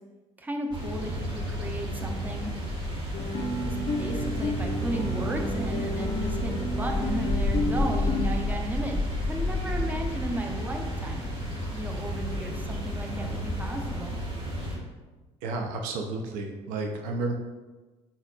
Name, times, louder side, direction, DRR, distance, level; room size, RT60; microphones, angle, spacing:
voice 1, 0.4-2.5 3.7-11.3 11.7-14.2, right 1 dB, 10° right, 2 dB, 0.6 m, -35 dB
sound 1, 0.7-14.8, equal, 30° right, 1.4 m, -31 dB
Guitar, 3.1-8.3, left 2 dB, 35° left, 0.4 m, -32 dB
voice 2, 15.4-17.3, right 3 dB, 60° right, 3 dB, 0.4 m, -31 dB
4.0 x 3.9 x 2.3 m, 1.2 s
figure-of-eight pair, 50°, 15 cm